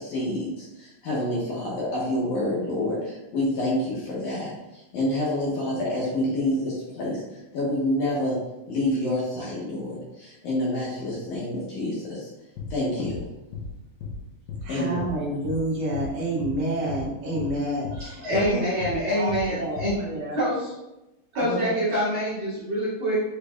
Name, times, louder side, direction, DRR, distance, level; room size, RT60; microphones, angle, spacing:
voice 1, 0.0-8.4 8.7-12.3 12.7-13.3 14.7-15.0, left 1 dB, 70° left, -6 dB, 2.2 m, -28 dB
sound 1, 12.6-12.7 13.0-13.2 13.5-13.7 14.0-14.2 14.5-14.6 15.0-15.1 15.4-15.6 15.9-16.1 16.4-16.6 16.9-17.0 17.4-17.5 17.8-18.0 18.3-18.5 18.8-19.0 19.3-19.4 19.8-19.9, left 4 dB, 85° left, 2.8 m, -34 dB
voice 2, 14.6-20.4 21.3-21.7, right 1 dB, 75° right, -5 dB, 1.5 m, -29 dB
voice 3, 18.0-19.9 20.3-20.7 21.3-23.2, equal, 45° right, -12 dB, 1.8 m, -26 dB
6.8 x 3.2 x 2.3 m, 0.97 s
omnidirectional pair, 4.2 m